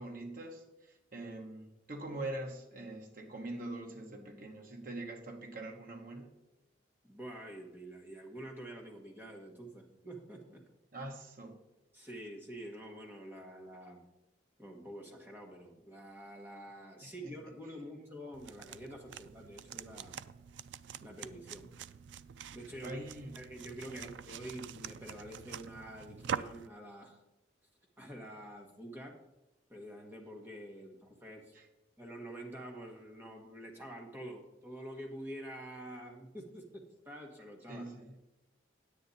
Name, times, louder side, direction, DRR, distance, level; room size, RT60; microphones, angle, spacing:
voice 1, 0.0-6.3 10.9-11.6 17.0-17.3 22.8-23.4 23.9-24.1 31.5-31.7 37.7-38.1, right 2 dB, 50° right, 2 dB, 1.3 m, -43 dB
voice 2, 7.1-10.6 11.9-14.0 14.6-20.2 21.0-21.7 22.5-23.0 23.3-27.2 28.0-29.2 29.7-31.4 32.0-37.9, right 1 dB, 10° right, 0 dB, 1.5 m, -47 dB
sound 1, 18.3-26.7, right 8 dB, 70° right, 0.3 m, -45 dB
9.4 x 8.6 x 4.1 m, 0.92 s
head